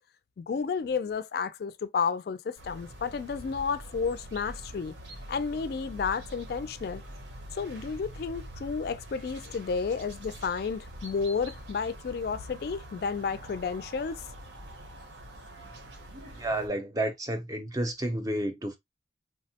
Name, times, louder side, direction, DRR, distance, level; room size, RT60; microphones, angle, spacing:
voice 1, 0.4-4.9 5.3-7.0 7.5-14.2, left 5 dB, 55° left, 0.3 m, -31 dB
sound 1, 2.6-16.7, right 1 dB, 80° right, 0.8 m, -45 dB
voice 2, 16.3-18.8, right 1 dB, 20° right, 0.5 m, -31 dB
3.5 x 2.0 x 2.8 m
head